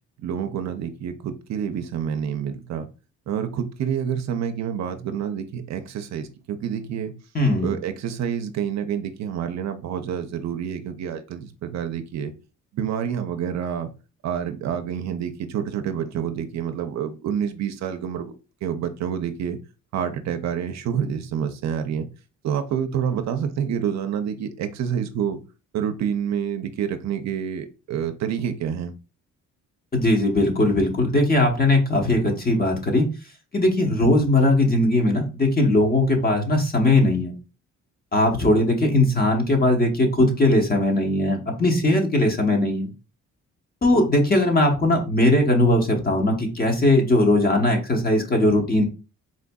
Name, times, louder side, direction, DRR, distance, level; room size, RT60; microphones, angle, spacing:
voice 1, 0.2-2.9 3.3-7.1 7.6-12.3 12.7-13.9 14.2-18.3 18.6-19.6 19.9-22.1 22.4-25.4 25.7-28.9, right 8 dB, 65° right, 8 dB, 0.5 m, -28 dB
voice 2, 7.3-7.7 29.9-33.0 33.5-37.3 38.1-42.9 43.8-48.8, left 1 dB, 30° left, 3 dB, 1.0 m, -19 dB
4.0 x 2.5 x 2.2 m, 0.32 s
cardioid pair, 90°, 30 cm